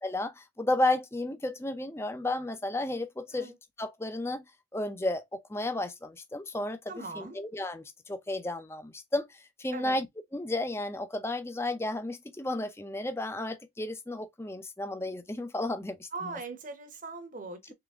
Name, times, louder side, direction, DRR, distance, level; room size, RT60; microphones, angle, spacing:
voice 1, 0.0-4.4 4.7-10.1 10.3-16.3, left 1 dB, 15° left, 0.5 m, -33 dB
voice 2, 6.9-7.4 9.7-10.0 16.1-17.7, right 3 dB, 40° right, 0.9 m, -40 dB
3.8 x 3.3 x 3.5 m
head